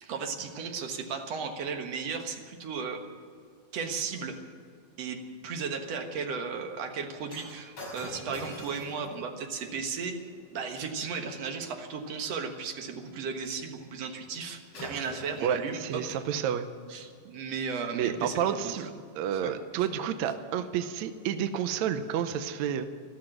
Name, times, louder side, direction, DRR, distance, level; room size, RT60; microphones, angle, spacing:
voice 1, 0.0-3.0 3.7-4.4 5.0-10.2 10.5-16.0 16.9-18.9 19.4-19.5, right 5 dB, 55° right, 4 dB, 2.2 m, -35 dB
Shatter, 7.3-11.7 14.3-14.5 14.7-16.2 17.0-17.1, left 1 dB, 40° left, 6.8 m, -45 dB
voice 2, 15.4-16.7 17.9-18.9 19.2-22.8, right 9 dB, 75° right, 9 dB, 1.7 m, -30 dB
14.0 x 13.0 x 7.8 m, 2.2 s
omnidirectional pair, 4.0 m